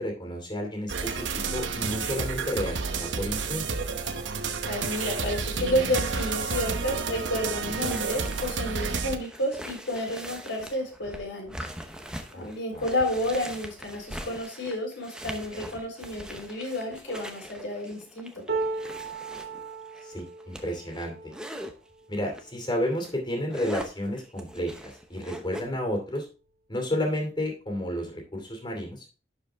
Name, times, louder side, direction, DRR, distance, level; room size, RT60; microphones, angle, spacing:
voice 1, 0.0-3.6 12.3-12.8 20.0-21.3 22.1-26.3 26.7-29.0, left 1 dB, 25° left, 2 dB, 2.6 m, -31 dB
sound 1, 0.9-9.2, right 5 dB, 80° right, 0.9 m, -30 dB
voice 2, 4.6-11.5 12.3-18.4, left 1 dB, 85° left, 1 dB, 3.9 m, -31 dB
sound 2, 5.6-21.7 22.3-22.5 22.9-25.6, equal, 5° right, 0.8 m, -42 dB
sound 3, 18.5-24.6 25.2-25.4 25.7-26.5 27.4-27.5, right 3 dB, 60° right, 1.7 m, -38 dB
11.0 x 5.0 x 3.5 m, 0.34 s
head